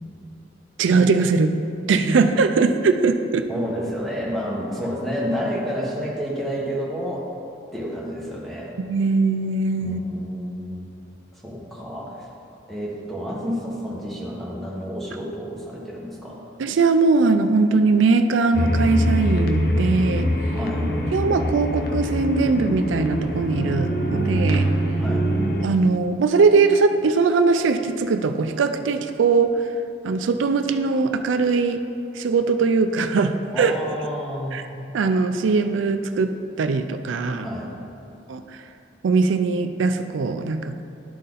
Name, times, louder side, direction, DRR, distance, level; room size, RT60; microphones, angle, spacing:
voice 1, 0.8-1.5 1.9-3.5 8.8-10.0 16.6-20.3 21.1-24.7 25.6-29.5 30.0-31.8 32.2-33.7 34.5-34.6 34.9-36.3 36.6-37.5 38.3-38.6 39.0-40.8, right 4 dB, 85° right, 8 dB, 0.4 m, -20 dB
voice 2, 3.5-7.3 7.7-8.7 9.8-10.8 11.4-12.3 12.7-16.4 20.5-20.8 25.0-25.2 33.5-34.6 37.4-37.7, equal, ahead, -4 dB, 1.0 m, -30 dB
sound 1, 18.5-25.7, equal, 50° left, 0.6 m, -23 dB
11.5 x 4.1 x 3.8 m, 2.6 s
head